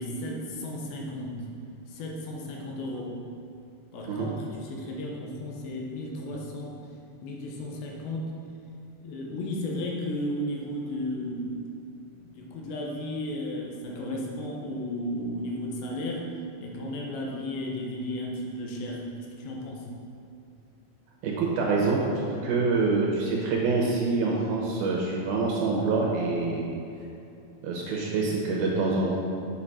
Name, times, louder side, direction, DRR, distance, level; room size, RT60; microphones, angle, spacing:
voice 1, 0.0-1.4 1.9-3.2 3.9-4.4 4.6-6.8 7.2-8.3 9.0-11.6 12.2-16.3 16.6-19.1 19.4-19.9, left 1 dB, 80° left, -1 dB, 3.4 m, -34 dB
voice 2, 21.2-26.7 27.6-29.2, right 3 dB, 70° right, -2 dB, 2.6 m, -26 dB
7.7 x 6.8 x 5.7 m, 2.7 s
omnidirectional pair, 5.1 m